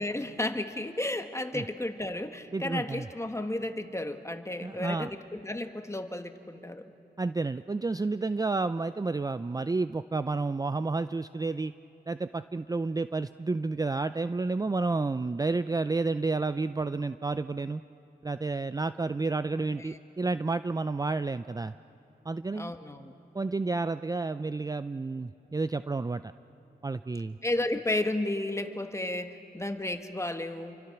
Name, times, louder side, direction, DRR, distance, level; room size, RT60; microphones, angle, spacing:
voice 1, 0.0-6.9 19.5-20.0 22.5-23.1 27.4-30.8, left 1 dB, 15° left, 7 dB, 1.5 m, -33 dB
voice 2, 2.5-3.1 4.6-5.1 7.2-11.7 12.1-17.8 18.2-21.7 22.3-22.7 23.3-26.3 26.8-27.4, right 3 dB, 20° right, 12 dB, 0.4 m, -30 dB
28.5 x 24.5 x 5.9 m, 2.8 s
cardioid pair, 55°, 17 cm